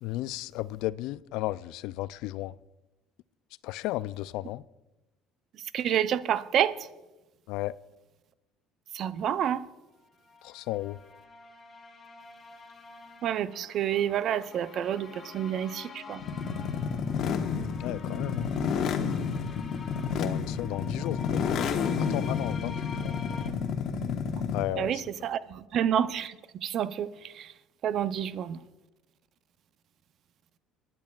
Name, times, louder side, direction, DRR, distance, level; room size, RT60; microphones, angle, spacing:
voice 1, 0.0-2.5 3.6-4.6 7.5-7.8 10.4-11.0 17.8-18.5 20.2-21.7 22.0-23.2 24.5-25.0, left 16 dB, 75° left, 0.3 m, -34 dB
voice 2, 5.7-6.8 8.9-9.6 13.2-16.2 24.8-27.5 27.8-28.6, right 9 dB, 60° right, 0.6 m, -29 dB
sound 1, 10.1-23.5, left 4 dB, 35° left, 3.6 m, -47 dB
sound 2, 16.2-24.8, left 6 dB, 60° left, 1.2 m, -30 dB
24.5 x 10.5 x 2.4 m
supercardioid pair, 80°, 0 cm